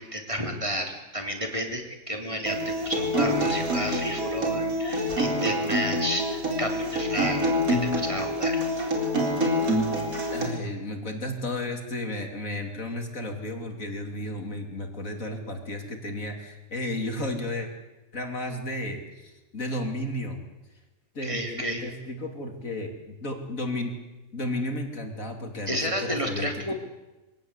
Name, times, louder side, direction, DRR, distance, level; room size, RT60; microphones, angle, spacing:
voice 1, 0.0-7.4 7.7-8.6 21.2-21.8 25.7-26.7, equal, 20° right, 3 dB, 3.5 m, -31 dB
Acoustic guitar, 2.5-10.5, equal, 75° right, 4.6 m, -26 dB
voice 2, 10.3-17.7 18.1-20.4 21.1-23.9 24.3-26.7, left 1 dB, 65° left, 4 dB, 3.5 m, -33 dB
25.0 x 18.0 x 8.3 m, 1.0 s
omnidirectional pair, 1.5 m